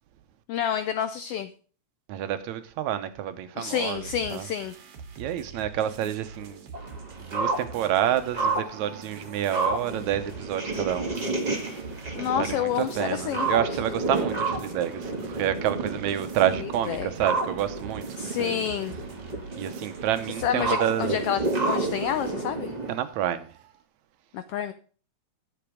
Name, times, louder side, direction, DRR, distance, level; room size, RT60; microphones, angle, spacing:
voice 1, 0.5-1.5 3.6-4.7 12.1-13.5 16.6-17.1 18.2-19.0 20.4-21.4 21.7-22.7 24.3-24.7, left 9 dB, 85° left, 1.3 m, -29 dB
voice 2, 2.1-4.1 4.3-4.5 5.2-6.6 7.2-11.4 11.7-11.8 12.4-18.7 19.6-21.3 22.9-23.5, right 11 dB, 80° right, 2.2 m, -29 dB
sound 1, 3.9-23.8, right 5 dB, 60° right, 2.3 m, -45 dB
sound 2, 6.7-22.9, right 2 dB, 15° right, 1.5 m, -31 dB
10.0 x 7.1 x 5.0 m
omnidirectional pair, 3.3 m